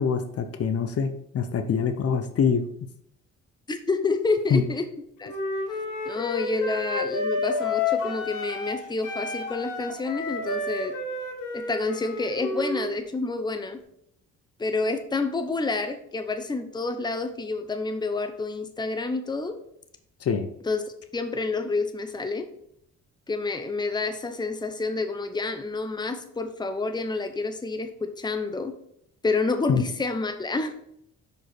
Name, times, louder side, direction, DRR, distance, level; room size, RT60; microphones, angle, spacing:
voice 1, 0.0-2.6 4.5-4.6 20.2-20.5 29.7-29.8, left 6 dB, 50° left, 8 dB, 0.7 m, -24 dB
voice 2, 3.7-4.8 5.2-5.3 6.0-10.9 11.5-13.8 14.6-19.5 20.7-20.8 21.1-22.5 23.3-28.7 29.2-30.8, left 3 dB, 15° left, 7 dB, 0.8 m, -28 dB
Wind instrument woodwind instrument, 5.2-8.8 9.0-12.9, left 3 dB, 85° left, 1.6 m, -30 dB
6.2 x 5.2 x 4.3 m, 0.73 s
cardioid pair, 90°, 30 cm